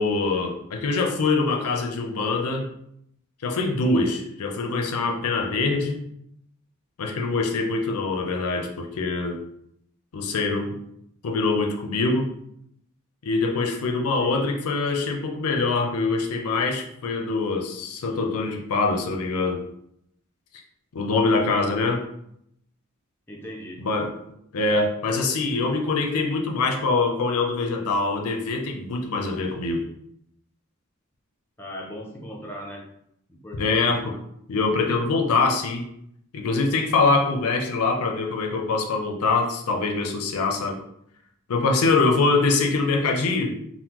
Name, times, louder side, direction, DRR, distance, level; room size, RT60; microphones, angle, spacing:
voice 1, 0.0-2.7 3.4-6.0 7.0-9.4 10.1-10.7 11.2-12.3 13.2-19.6 20.9-22.0 23.8-24.1 24.5-29.8 33.5-34.2 34.5-35.9 36.3-40.8 41.5-43.5, left 3 dB, 80° left, 2 dB, 0.5 m, -24 dB
voice 2, 14.2-14.5 23.3-23.9 24.7-24.8 25.6-25.7 31.6-32.9 33.3-33.9, equal, 10° left, -2 dB, 0.5 m, -39 dB
3.5 x 2.1 x 2.9 m, 0.74 s
head